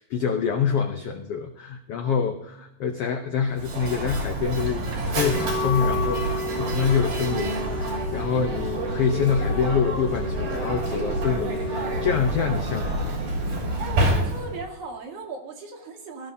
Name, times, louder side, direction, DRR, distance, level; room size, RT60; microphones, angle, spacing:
voice 1, 0.0-13.5, left 7 dB, 80° left, 4 dB, 1.3 m, -26 dB
Mechanisms, 3.5-14.7, right 1 dB, 85° right, 5.1 m, -28 dB
Wind instrument woodwind instrument, 5.2-12.2, left 2 dB, 25° left, 1.9 m, -33 dB
voice 2, 13.8-16.3, right 3 dB, 65° right, 0 dB, 3.3 m, -37 dB
18.5 x 14.0 x 2.8 m, 0.84 s
omnidirectional pair, 3.8 m